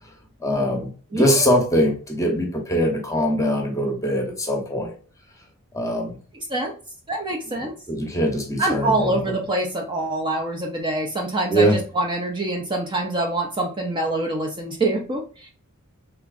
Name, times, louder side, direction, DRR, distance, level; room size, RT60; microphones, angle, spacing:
voice 1, 0.4-4.9 5.7-6.2 7.6-9.3 11.5-11.8, equal, 15° left, 1 dB, 0.8 m, -22 dB
voice 2, 1.1-1.4 6.3-6.7 7.1-7.7 8.6-11.7 11.9-15.5, right 2 dB, 20° right, 1 dB, 0.5 m, -25 dB
3.4 x 3.0 x 2.4 m, 0.38 s
head